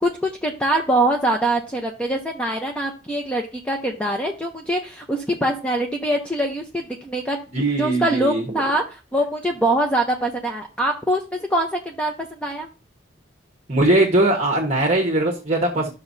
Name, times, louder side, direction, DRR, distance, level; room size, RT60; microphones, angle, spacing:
voice 1, 0.0-7.4 7.8-12.7, right 1 dB, 5° left, 2 dB, 0.7 m, -23 dB
voice 2, 7.5-8.5 13.7-15.9, right 2 dB, 35° right, 0 dB, 1.2 m, -20 dB
11.5 x 6.1 x 2.7 m, 0.33 s
head